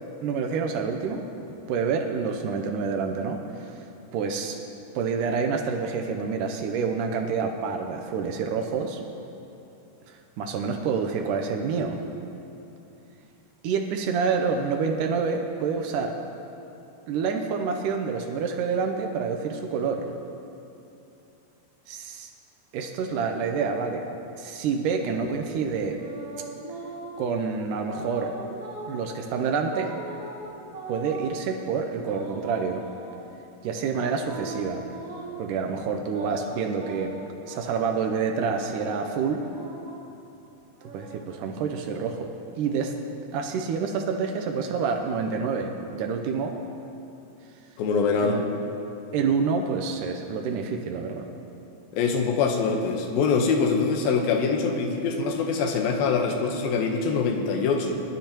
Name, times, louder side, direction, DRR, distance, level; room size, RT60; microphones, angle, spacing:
voice 1, 0.2-1.2 1.7-3.7 4.1-4.6 5.0-9.0 10.1-12.0 13.6-16.1 17.1-20.1 21.9-22.3 22.7-24.1 24.4-26.0 27.2-28.3 28.9-30.0 30.9-32.8 33.6-34.8 35.4-37.2 37.5-39.4 40.9-42.9 43.3-46.6 48.2-48.4 49.1-51.3, right 5 dB, 80° right, 4 dB, 2.0 m, -28 dB
sound 1, 25.3-27.4 27.8-29.1 29.7-31.4 32.0-33.4 33.9-35.5 36.0-37.9 38.4-40.1 40.7-42.1, right 2 dB, 60° right, 1.5 m, -41 dB
voice 2, 47.8-48.4 51.9-58.0, left 5 dB, 80° left, 3 dB, 2.7 m, -24 dB
19.5 x 12.0 x 2.9 m, 2.8 s
omnidirectional pair, 4.3 m